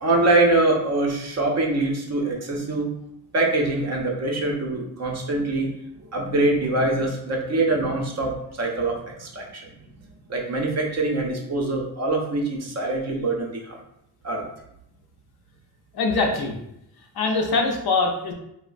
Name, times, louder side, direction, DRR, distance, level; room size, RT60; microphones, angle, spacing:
voice 1, 0.0-2.9 3.3-5.7 6.1-9.6 10.3-13.8 14.2-14.5, right 2 dB, 40° right, 0 dB, 0.5 m, -24 dB
voice 2, 15.9-16.6 17.1-18.3, left 3 dB, 65° left, 1 dB, 0.5 m, -23 dB
3.0 x 2.0 x 2.4 m, 0.79 s
wide cardioid pair, 140°, 41 cm